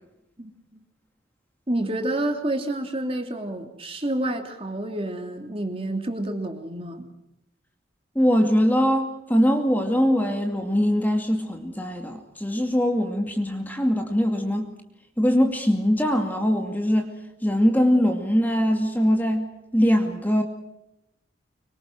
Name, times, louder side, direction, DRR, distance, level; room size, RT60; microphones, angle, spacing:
voice 1, 0.4-0.8 1.7-7.1, right 1 dB, 30° right, 4 dB, 3.2 m, -29 dB
voice 2, 8.2-14.7 15.2-17.1 17.4-19.5 19.7-20.4, equal, 10° left, 4 dB, 2.4 m, -22 dB
25.5 x 24.5 x 6.2 m, 0.86 s
head